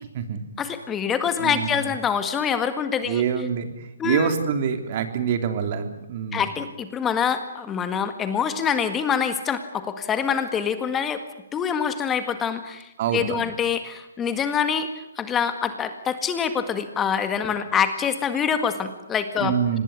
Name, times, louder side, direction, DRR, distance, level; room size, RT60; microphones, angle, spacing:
voice 1, 0.6-3.2 4.0-4.3 6.3-11.2 11.5-14.9 15.2-19.5, left 7 dB, 15° left, 9 dB, 1.8 m, -25 dB
voice 2, 1.4-1.8 3.0-6.5 13.0-13.5 19.4-19.8, right 7 dB, 45° right, 7 dB, 3.3 m, -26 dB
26.0 x 19.5 x 9.8 m, 0.91 s
hypercardioid pair, 140°, 0 cm